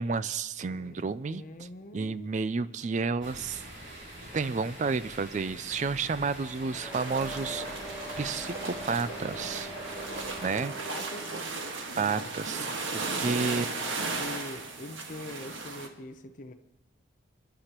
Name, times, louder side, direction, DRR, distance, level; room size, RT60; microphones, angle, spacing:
voice 1, 0.0-1.4 1.9-3.6 4.3-7.8 8.2-9.7 10.4-10.7 12.0-12.7 12.9-13.7, right 4 dB, 40° right, 15 dB, 0.3 m, -31 dB
voice 2, 0.6-2.3 10.5-11.4 11.9-12.3 13.5-16.5, left 2 dB, 40° left, 5 dB, 0.7 m, -44 dB
sound 1, 3.2-10.5, right 1 dB, 60° right, 6.2 m, -45 dB
sound 2, 6.6-11.7, right 1 dB, 5° right, 5.9 m, -42 dB
sound 3, 6.9-15.9, right 3 dB, 85° right, 1.6 m, -36 dB
26.5 x 11.5 x 3.0 m, 1.0 s
head